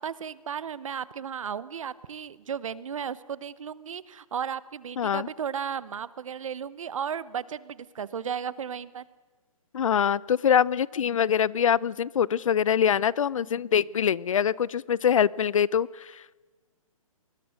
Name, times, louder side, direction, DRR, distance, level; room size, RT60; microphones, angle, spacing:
voice 1, 0.0-9.0, right 7 dB, 65° right, 18 dB, 1.1 m, -34 dB
voice 2, 5.0-5.3 9.7-16.2, left 8 dB, 65° left, 23 dB, 0.6 m, -24 dB
27.0 x 21.0 x 6.5 m, 1.3 s
hypercardioid pair, 150°, 18 cm